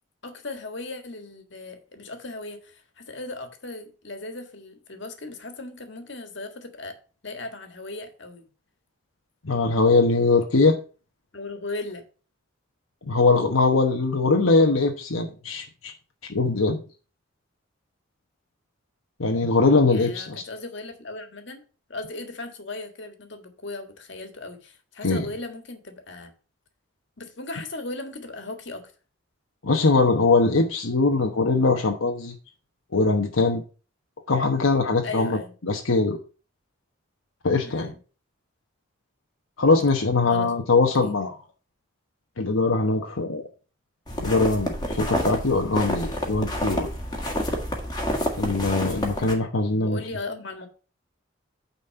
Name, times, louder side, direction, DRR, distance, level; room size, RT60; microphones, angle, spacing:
voice 1, 0.2-7.0 7.2-8.5 11.3-12.0 19.9-26.3 27.2-28.9 35.0-35.5 37.6-38.0 40.3-40.5 41.0-41.1 49.7-50.7, left 2 dB, 60° left, 6 dB, 1.7 m, -37 dB
voice 2, 9.4-10.8 13.1-15.9 16.2-16.8 19.2-20.4 25.0-25.2 29.6-32.3 32.9-33.6 34.3-35.4 35.6-36.2 37.4-37.9 39.6-41.4 42.4-43.5 44.2-46.9 48.4-50.0, left 3 dB, 85° left, 3 dB, 1.0 m, -21 dB
sound 1, 44.1-49.3, equal, 20° left, 1.7 m, -29 dB
9.2 x 4.2 x 6.6 m, 0.36 s
head